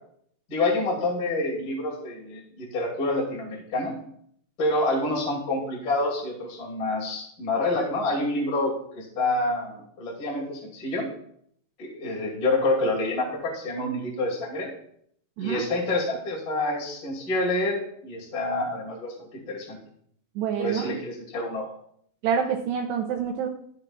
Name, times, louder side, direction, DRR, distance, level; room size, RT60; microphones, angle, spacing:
voice 1, 0.5-4.0 4.6-11.1 11.8-14.7 15.4-19.8 20.6-21.7, left 2 dB, 30° left, -3 dB, 1.9 m, -27 dB
voice 2, 20.4-21.0 22.2-23.5, right 7 dB, 80° right, 3 dB, 2.5 m, -27 dB
14.5 x 6.8 x 2.4 m, 0.67 s
omnidirectional pair, 5.4 m